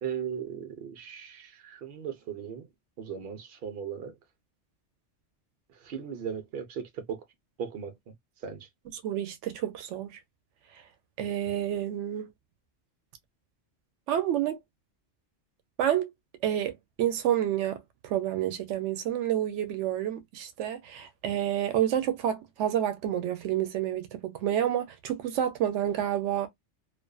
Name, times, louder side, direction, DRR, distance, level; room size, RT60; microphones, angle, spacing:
voice 1, 0.0-2.6 3.0-4.2 5.8-7.2 7.6-7.9 8.4-8.7, right 8 dB, 60° right, 0.9 m, -37 dB
voice 2, 8.9-10.2 11.2-12.3 14.1-14.6 15.8-16.1 16.4-26.5, right 11 dB, 90° right, 0.9 m, -29 dB
2.4 x 2.4 x 2.2 m
omnidirectional pair, 1.2 m